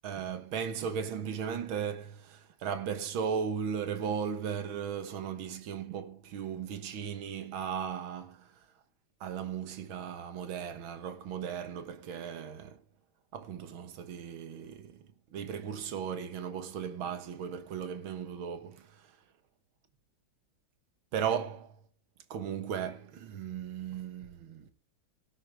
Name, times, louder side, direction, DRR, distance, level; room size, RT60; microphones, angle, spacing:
voice 1, 0.0-8.6 9.2-12.8 13.3-15.0 15.3-19.1 21.1-21.8 22.3-24.7, right 7 dB, 80° right, 2.2 m, -36 dB
17.5 x 9.8 x 3.6 m
omnidirectional pair, 2.2 m